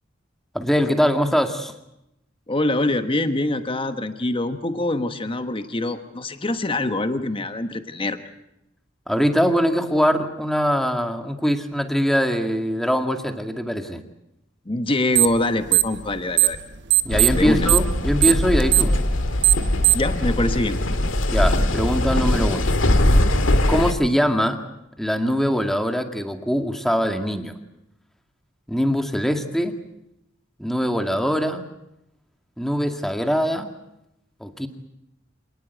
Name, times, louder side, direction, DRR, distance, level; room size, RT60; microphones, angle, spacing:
voice 1, 0.5-1.7 9.1-14.0 17.0-18.9 21.3-22.7 23.7-24.6 25.0-27.5 28.7-29.8 30.6-31.7 32.6-33.7 34.4-34.7, equal, ahead, 6 dB, 2.0 m, -22 dB
voice 2, 2.5-8.2 14.7-16.6 17.3-17.7 19.9-20.8, left 2 dB, 25° left, 9 dB, 1.2 m, -24 dB
sound 1, 15.1-15.4 15.7-16.6 16.9-20.1, right 21 dB, 60° right, 1.2 m, -18 dB
sound 2, 17.1-23.9, left 1 dB, 80° left, 1.9 m, -21 dB
27.0 x 19.0 x 8.2 m, 0.85 s
head